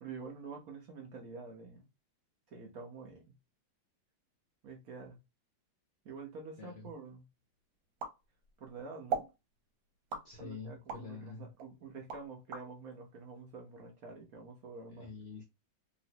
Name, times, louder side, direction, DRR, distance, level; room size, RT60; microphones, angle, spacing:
voice 1, 0.0-1.9 2.5-3.4 4.6-5.2 6.0-7.3 8.6-9.3 10.4-15.1, right 4 dB, 60° right, 1.0 m, -47 dB
voice 2, 6.6-6.9 10.2-11.5 14.9-15.4, left 4 dB, 65° left, 0.7 m, -46 dB
sound 1, 8.0-8.7 9.1-9.4 10.1-11.1 11.6-12.7, right 5 dB, 80° right, 1.6 m, -39 dB
3.0 x 2.9 x 2.7 m
omnidirectional pair, 2.1 m